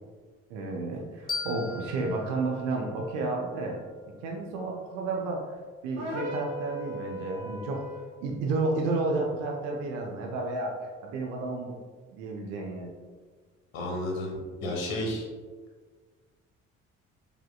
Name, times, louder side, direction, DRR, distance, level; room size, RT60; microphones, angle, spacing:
voice 1, 0.5-5.4 5.8-7.8 8.2-10.7 11.0-11.8 12.1-12.9, right 3 dB, 65° right, 0 dB, 0.6 m, -31 dB
sound 1, 1.3-4.1, left 4 dB, 20° left, 0.7 m, -40 dB
sound 2, 5.9-8.2, left 1 dB, 40° right, 1.1 m, -37 dB
voice 2, 13.7-15.3, left 1 dB, 60° left, -2 dB, 1.0 m, -32 dB
4.9 x 2.7 x 2.2 m, 1.4 s
figure-of-eight pair, 45°, 40 cm